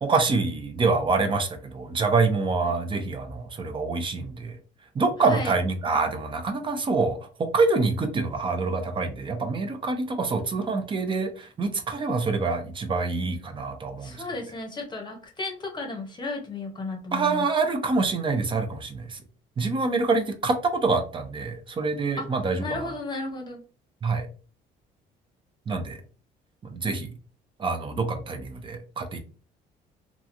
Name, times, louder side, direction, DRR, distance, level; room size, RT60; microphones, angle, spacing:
voice 1, 0.0-4.6 5.0-14.2 17.1-19.2 19.6-22.9 24.0-24.3 25.7-26.0 26.6-27.1 27.6-29.2, right 3 dB, 30° right, 7 dB, 0.5 m, -26 dB
voice 2, 5.2-5.5 14.0-17.4 22.2-22.3 22.6-23.6, left 2 dB, 25° left, 2 dB, 0.8 m, -34 dB
2.9 x 2.4 x 2.5 m, 0.37 s
cardioid pair, 110°, 17 cm